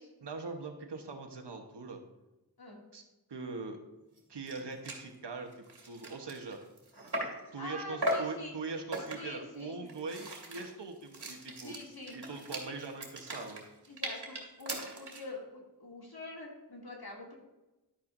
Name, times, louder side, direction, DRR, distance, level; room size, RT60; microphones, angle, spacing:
voice 1, 0.2-2.0 2.9-3.0 3.3-3.8 4.3-6.6 7.5-11.8 12.1-13.6, right 4 dB, 90° right, 4 dB, 1.2 m, -42 dB
sound 1, 4.2-4.3 4.5-4.6 4.8-5.1 5.5-7.5 8.0-8.4 8.9-9.4 9.9-15.3, right 1 dB, 70° right, 2.2 m, -38 dB
voice 2, 7.6-8.5 9.0-9.8 11.6-12.2 12.5-12.7 13.9-17.4, left 2 dB, 65° left, -2 dB, 2.7 m, -45 dB
11.5 x 8.7 x 2.7 m, 1.0 s
wide cardioid pair, 60°, 40 cm